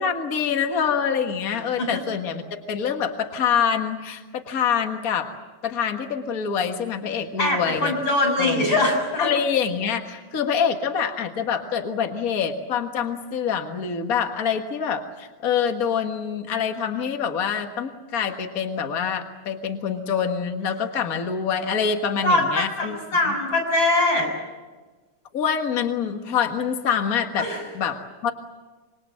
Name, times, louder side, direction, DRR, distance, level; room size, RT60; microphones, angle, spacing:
voice 1, 0.0-2.4 2.7-5.3 5.6-7.9 8.4-8.7 9.2-23.0 23.2-23.3 25.3-27.5 27.7-28.3, left 7 dB, 55° left, 5 dB, 0.9 m, -25 dB
voice 2, 7.4-9.3 22.2-24.3 27.4-27.6, left 2 dB, 30° left, 1 dB, 7.3 m, -22 dB
26.5 x 23.0 x 7.7 m, 1.3 s
omnidirectional pair, 4.0 m